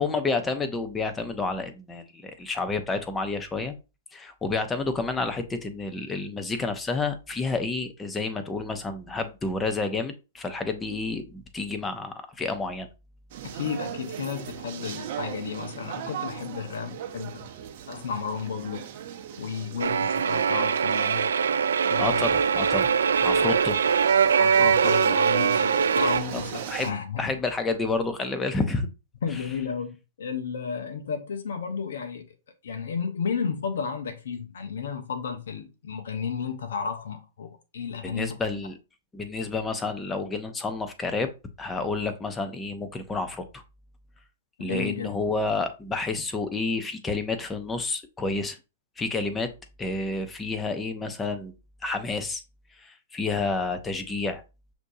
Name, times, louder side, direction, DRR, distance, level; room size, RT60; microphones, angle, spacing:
voice 1, 0.0-3.7 4.1-12.9 22.0-22.9 23.2-23.8 26.3-26.4 26.7-28.9 38.0-38.8 39.1-41.3 41.6-43.6 44.6-48.6 49.0-49.5 49.8-51.5 51.8-52.4 52.8-54.4, left 3 dB, 15° left, 0.7 m, -29 dB
sound 1, 13.3-26.9, right 9 dB, 55° right, 0.7 m, -38 dB
voice 2, 13.4-17.5 17.9-18.9 19.4-21.3 21.9-22.3 24.4-27.3 29.2-32.3 32.6-38.4 44.6-45.2, left 6 dB, 75° left, 0.8 m, -32 dB
sound 2, 19.8-26.2, right 6 dB, 85° right, 0.3 m, -22 dB
6.0 x 2.7 x 2.7 m
hypercardioid pair, 125°, 0 cm